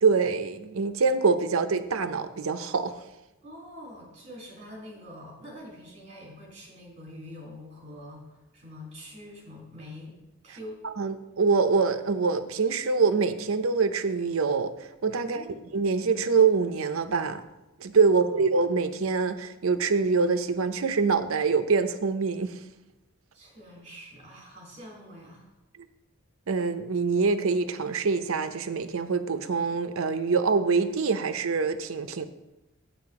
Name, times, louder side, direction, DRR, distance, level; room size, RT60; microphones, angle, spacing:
voice 1, 0.0-2.9 11.0-14.7 15.0-15.4 15.7-17.4 17.8-22.5 26.5-32.3, right 4 dB, 70° right, 10 dB, 0.6 m, -25 dB
voice 2, 3.4-10.2 10.4-10.8 15.2-15.7 18.1-18.3 23.3-25.5, left 1 dB, 30° right, -3 dB, 3.3 m, -45 dB
7.6 x 7.0 x 4.7 m, 0.98 s
head